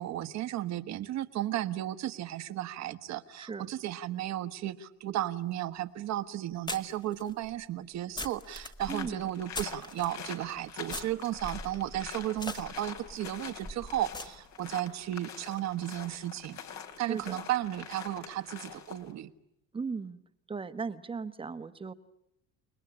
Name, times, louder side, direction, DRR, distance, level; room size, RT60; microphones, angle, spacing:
voice 1, 0.0-16.6 17.0-19.3, right 13 dB, 60° right, 12 dB, 1.4 m, -34 dB
voice 2, 3.4-3.7 8.9-9.2 17.0-17.4 19.7-20.2 20.5-21.9, right 5 dB, 15° right, 10 dB, 1.1 m, -37 dB
sound 1, 5.6-5.7 6.7-10.2 10.9-14.8, left 2 dB, 15° left, 1.4 m, -42 dB
sound 2, 8.8-19.1, left 8 dB, 60° left, 3.4 m, -45 dB
29.5 x 20.0 x 9.9 m, 0.82 s
cardioid pair, 135°, 31 cm